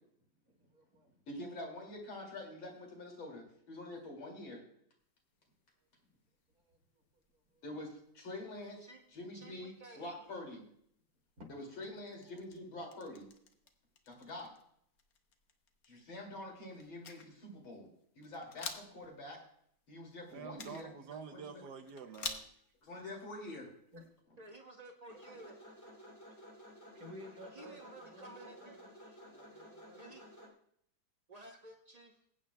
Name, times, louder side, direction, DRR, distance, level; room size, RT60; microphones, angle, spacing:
voice 1, 0.7-1.1 6.7-7.0 7.5-7.6 11.4-11.5 11.9-12.2 23.9-24.0 26.9-28.9 29.3-30.2, equal, 50° right, -1 dB, 3.1 m, -54 dB
voice 2, 1.3-4.6 7.6-10.6 11.5-13.3 14.1-14.5 15.8-17.9 18.2-19.4 19.9-20.9 21.3-21.6 22.8-23.7 25.3-25.4, left 1 dB, 90° left, 1 dB, 3.3 m, -46 dB
sound 1, 5.0-24.2, left 5 dB, 55° left, 1.2 m, -53 dB
voice 3, 9.3-10.2 24.4-25.5 27.5-28.8 29.1-29.2 30.0-30.2 31.3-32.2, right 1 dB, 85° right, 1 dB, 0.3 m, -53 dB
voice 4, 20.3-22.5, right 5 dB, 65° right, 8 dB, 1.2 m, -47 dB
sound 2, 25.1-30.5, equal, 10° left, 2.5 m, -54 dB
21.0 x 8.8 x 2.2 m, 0.68 s
omnidirectional pair, 2.1 m